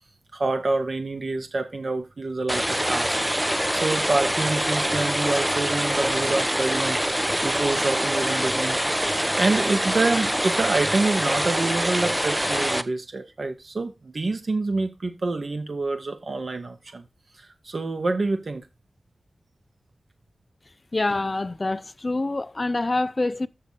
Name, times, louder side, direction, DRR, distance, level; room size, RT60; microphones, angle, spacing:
voice 1, 0.3-8.8 9.1-17.0 17.4-18.6, right 3 dB, 60° right, 2.3 m, -27 dB
sound 1, 2.5-12.8, equal, 5° right, 0.8 m, -25 dB
voice 2, 20.9-23.5, left 2 dB, 40° left, 0.5 m, -26 dB
6.8 x 6.6 x 6.7 m
wide cardioid pair, 70°, 0 cm